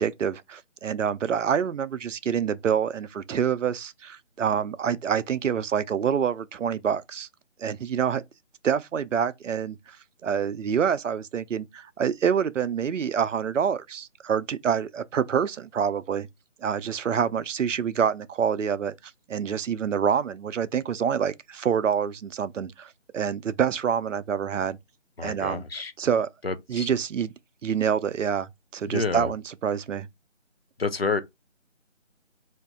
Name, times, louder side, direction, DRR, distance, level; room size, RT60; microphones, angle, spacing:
voice 1, 0.0-7.3 7.6-8.2 8.6-10.0 10.2-16.3 16.6-24.8 25.2-25.6 26.0-26.3 26.7-27.3 27.6-30.1, right 7 dB, 80° right, 0.5 m, -27 dB
voice 2, 25.2-25.9 26.4-26.9 28.9-29.3 30.8-31.2, left 4 dB, 55° left, 0.5 m, -29 dB
2.8 x 2.6 x 3.5 m
figure-of-eight pair, 180°, 37 cm